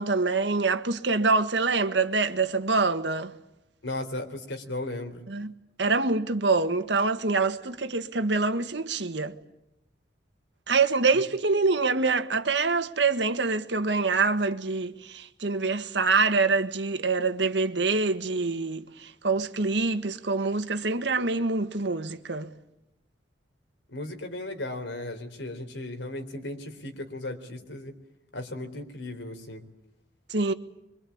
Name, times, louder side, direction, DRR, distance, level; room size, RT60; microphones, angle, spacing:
voice 1, 0.0-3.3 5.3-5.5 5.8-9.3 10.7-22.5 30.3-30.5, right 4 dB, 75° right, 1.7 m, -25 dB
voice 2, 3.8-5.3 23.9-27.9 28.3-29.6, left 2 dB, 85° left, 4.0 m, -36 dB
25.0 x 24.5 x 8.7 m
head